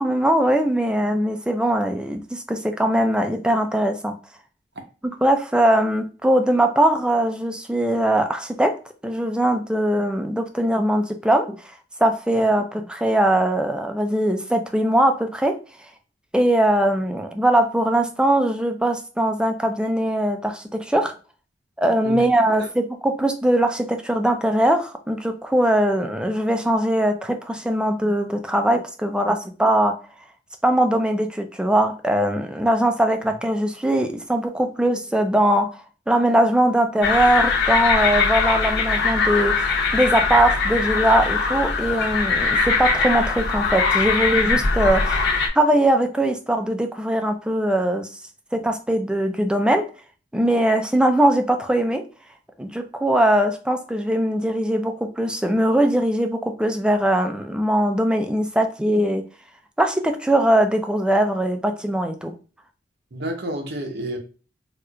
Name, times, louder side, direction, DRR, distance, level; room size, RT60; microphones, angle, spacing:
voice 1, 0.0-4.1 5.2-8.8 9.0-11.6 12.0-15.6 16.3-21.1 21.8-29.9 30.6-35.7 36.1-39.7 39.9-45.2 45.6-48.1 48.5-49.9 50.3-52.1 52.6-59.2 59.8-62.3, right 1 dB, 5° right, 0.4 m, -21 dB
sound 1, 37.0-45.5, left 4 dB, 60° left, 0.9 m, -21 dB
voice 2, 63.1-64.2, right 1 dB, 60° right, 0.8 m, -30 dB
4.3 x 2.4 x 2.3 m
head